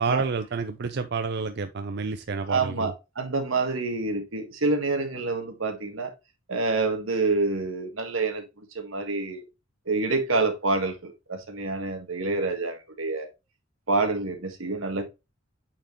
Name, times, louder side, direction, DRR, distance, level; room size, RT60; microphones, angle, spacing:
voice 1, 0.0-2.9, right 4 dB, 55° right, 0.5 m, -29 dB
voice 2, 2.5-6.1 6.5-8.4 8.8-9.4 9.9-13.3 13.9-15.0, right 3 dB, 90° right, 1.6 m, -27 dB
8.8 x 4.5 x 3.0 m
head